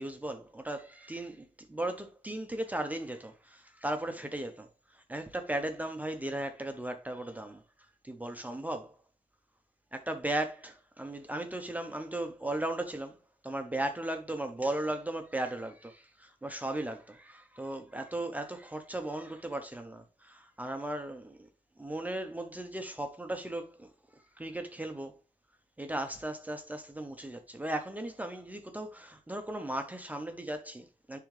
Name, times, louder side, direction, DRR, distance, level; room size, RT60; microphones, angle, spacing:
voice 1, 0.0-7.6 8.0-9.0 9.9-13.2 13.4-21.4 21.8-23.9 24.4-25.1 25.8-31.2, right 1 dB, 10° right, 0.7 m, -36 dB
10.0 x 3.6 x 3.2 m
wide cardioid pair, 145°, 14 cm